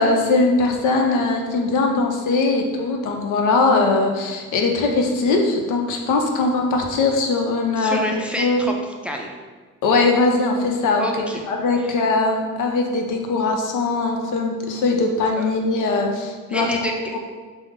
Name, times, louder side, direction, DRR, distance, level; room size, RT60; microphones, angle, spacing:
voice 1, 0.0-8.0 8.4-8.6 9.8-11.1 11.5-16.7 17.1-17.2, left 3 dB, 85° left, 2 dB, 0.7 m, -20 dB
voice 2, 7.8-8.7 9.0-9.3 11.0-11.4 11.8-11.9 15.4-15.5 16.5-17.2, equal, 5° right, 1 dB, 0.4 m, -28 dB
5.2 x 2.1 x 3.6 m, 1.4 s
cardioid pair, 90°, 30 cm